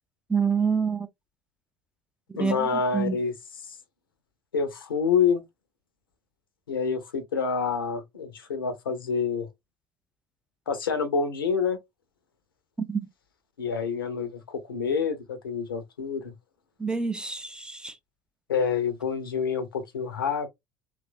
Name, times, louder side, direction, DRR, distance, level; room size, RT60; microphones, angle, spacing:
voice 1, 0.3-1.1 2.3-3.2 12.9-13.0 16.8-18.0, right 5 dB, 5° right, 0.3 m, -27 dB
voice 2, 2.3-3.3 3.7-3.8 4.5-5.4 6.7-9.5 10.7-11.8 13.6-16.3 18.5-20.5, left 6 dB, 75° left, 0.6 m, -27 dB
2.9 x 2.3 x 2.4 m
figure-of-eight pair, 65°, 12 cm